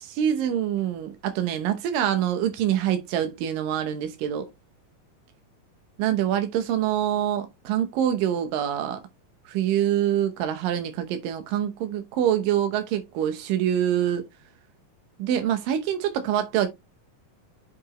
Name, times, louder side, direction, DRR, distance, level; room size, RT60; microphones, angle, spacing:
voice 1, 0.0-4.5 6.0-9.0 9.5-14.3 15.2-16.7, right 10 dB, 90° right, 2.6 m, -25 dB
8.0 x 4.8 x 3.0 m
omnidirectional pair, 3.8 m